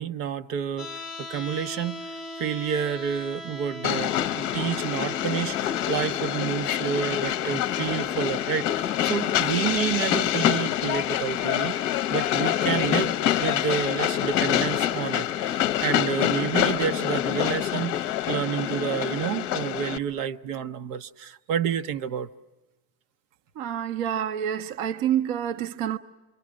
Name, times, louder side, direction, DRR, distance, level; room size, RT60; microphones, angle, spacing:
voice 1, 0.0-2.1 2.4-11.8 12.1-13.1 13.4-22.3, right 8 dB, 75° right, 0.9 m, -29 dB
sound 1, 0.8-12.8, left 1 dB, ahead, 0.7 m, -42 dB
Train, 3.8-20.0, left 11 dB, 40° left, 0.7 m, -26 dB
voice 2, 23.6-26.0, right 10 dB, 45° right, 0.7 m, -27 dB
27.5 x 24.5 x 6.3 m
cardioid pair, 175°, 47 cm